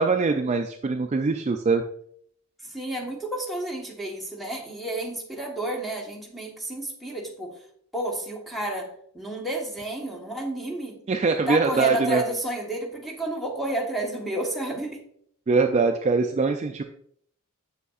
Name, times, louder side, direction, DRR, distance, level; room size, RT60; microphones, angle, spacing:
voice 1, 0.0-1.8 11.1-12.2 15.5-16.8, right 4 dB, 30° right, 5 dB, 0.3 m, -22 dB
voice 2, 2.6-7.5 7.9-11.0 11.5-15.0, right 1 dB, ahead, -3 dB, 1.2 m, -31 dB
7.2 x 6.8 x 2.4 m, 0.65 s
head